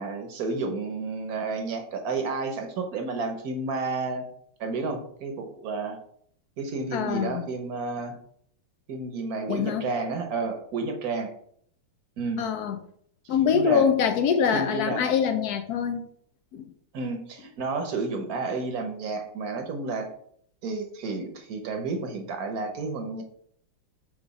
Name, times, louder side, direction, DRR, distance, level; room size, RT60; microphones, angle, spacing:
voice 1, 0.0-4.3 4.6-6.0 6.6-8.2 8.9-11.3 12.2-12.4 13.5-13.8 14.5-15.0 16.9-20.1 20.6-23.2, right 3 dB, 55° right, 5 dB, 1.1 m, -31 dB
voice 2, 6.9-7.4 9.5-9.8 12.4-12.8 13.3-16.0 16.5-16.7, left 7 dB, 90° left, 7 dB, 0.8 m, -24 dB
6.1 x 3.6 x 4.8 m, 0.63 s
omnidirectional pair, 2.4 m